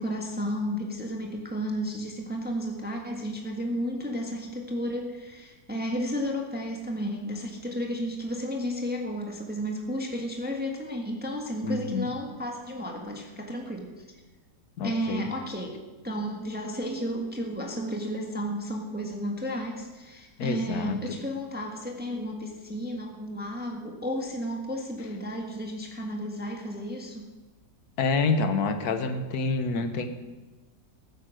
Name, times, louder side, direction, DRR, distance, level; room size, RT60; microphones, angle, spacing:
voice 1, 0.0-14.0 14.8-15.8 16.0-27.3, equal, 5° right, 1 dB, 1.4 m, -33 dB
voice 2, 11.6-12.1 14.8-15.3 20.4-21.0 28.0-30.1, left 4 dB, 65° left, 8 dB, 1.6 m, -27 dB
15.0 x 8.7 x 6.4 m, 1.2 s
omnidirectional pair, 1.9 m